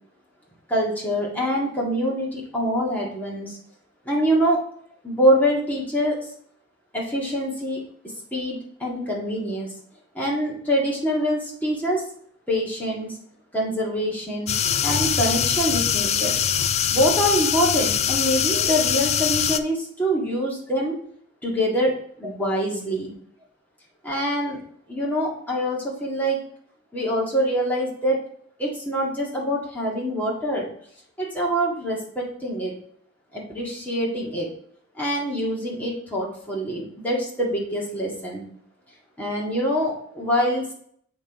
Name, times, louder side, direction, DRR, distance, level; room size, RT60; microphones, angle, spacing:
voice 1, 0.7-3.6 4.1-4.6 5.0-6.2 6.9-7.8 8.3-9.7 10.1-12.0 12.5-13.2 13.5-14.5 14.8-16.4 16.9-21.0 21.4-21.9 22.2-23.1 24.0-24.6 24.9-26.4 26.9-28.2 28.6-30.7 31.2-32.7 33.3-34.5 34.9-38.5 39.2-40.7, equal, 10° left, -4 dB, 1.9 m, -25 dB
sound 1, 14.5-19.6, left 8 dB, 35° left, 0.4 m, -23 dB
8.0 x 3.7 x 4.8 m, 0.64 s
head